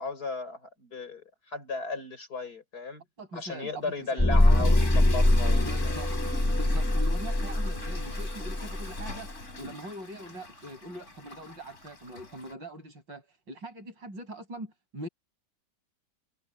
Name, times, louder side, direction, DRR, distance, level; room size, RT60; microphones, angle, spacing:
voice 1, 0.0-3.0 3.3-6.0, left 3 dB, 55° left, 6.1 m, -36 dB
voice 2, 3.2-4.3 4.6-4.7 5.7-6.1 6.6-9.3 9.6-15.1, right 1 dB, 85° right, 8.7 m, -42 dB
Toilet flush / Fill (with liquid), 4.2-12.5, left 2 dB, 40° left, 4.5 m, -41 dB
sound 1, 4.2-9.1, left 1 dB, 10° left, 0.7 m, -24 dB
omnidirectional pair, 1.9 m